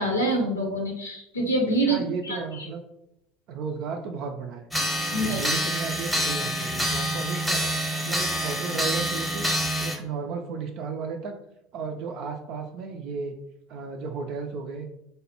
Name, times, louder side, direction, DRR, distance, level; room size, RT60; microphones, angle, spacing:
voice 1, 0.0-2.0 2.2-2.7 5.1-5.5, right 1 dB, 85° left, 1 dB, 0.7 m, -26 dB
voice 2, 1.9-2.8 3.5-4.7 5.1-9.5 9.8-11.4 11.7-13.4 13.7-14.9, right 5 dB, 50° right, 4 dB, 0.4 m, -34 dB
sound 1, 4.7-10.0, equal, ahead, 0.8 m, -27 dB
3.3 x 2.1 x 2.9 m, 0.80 s
figure-of-eight pair, 70°, 0 cm